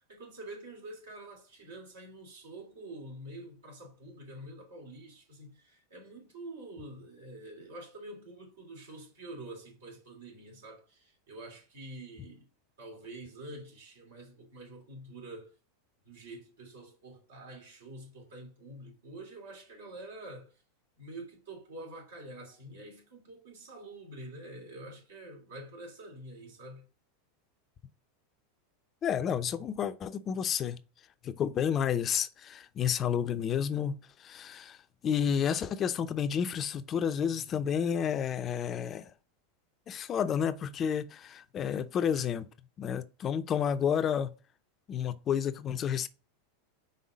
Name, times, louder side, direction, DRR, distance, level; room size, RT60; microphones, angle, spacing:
voice 1, 0.0-12.5 12.8-15.5 16.0-20.5 21.0-26.9, right 1 dB, 80° right, 2.9 m, -47 dB
voice 2, 29.0-30.8 31.2-34.8 35.0-39.1 39.9-42.5 42.8-44.3 44.9-46.1, left 8 dB, 35° left, 0.5 m, -30 dB
5.5 x 3.7 x 5.0 m
hypercardioid pair, 95°, 0 cm